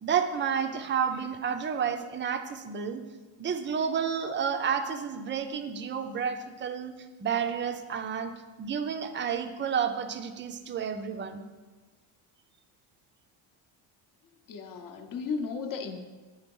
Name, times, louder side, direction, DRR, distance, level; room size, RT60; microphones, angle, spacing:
voice 1, 0.0-3.0 3.4-6.9 7.2-8.3 8.6-11.4, right 7 dB, 25° right, 8 dB, 0.4 m, -30 dB
voice 2, 14.5-16.0, left 5 dB, 45° left, 6 dB, 0.7 m, -34 dB
9.2 x 3.8 x 5.3 m, 1.3 s
cardioid pair, 150°, 48 cm